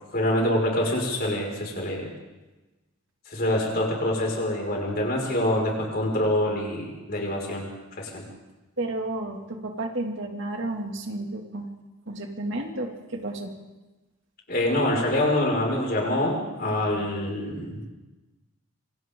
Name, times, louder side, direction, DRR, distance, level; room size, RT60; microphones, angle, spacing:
voice 1, 0.1-2.1 3.3-7.7 8.0-8.2 14.5-17.8, left 1 dB, 45° left, -1 dB, 5.8 m, -25 dB
voice 2, 8.8-11.7 12.1-13.5, right 2 dB, 55° right, 2 dB, 2.6 m, -32 dB
27.0 x 26.0 x 3.9 m, 1.1 s
head